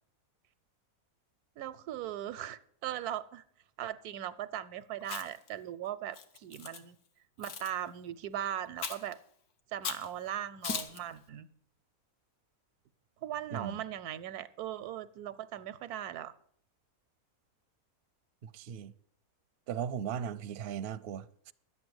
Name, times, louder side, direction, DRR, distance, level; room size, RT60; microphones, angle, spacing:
voice 1, 1.6-3.4 3.8-7.0 7.4-9.2 9.7-11.5 13.2-16.3, right 11 dB, 90° right, 1.2 m, -39 dB
Chewing mastication, 5.0-5.5 6.1-6.8 7.4-7.7 8.8-9.1 9.8-10.1 10.6-11.0, left 6 dB, 80° left, 1.6 m, -38 dB
voice 2, 13.5-13.8 18.4-18.9 19.7-21.5, right 8 dB, 60° right, 0.7 m, -38 dB
11.0 x 8.3 x 7.9 m
omnidirectional pair, 1.6 m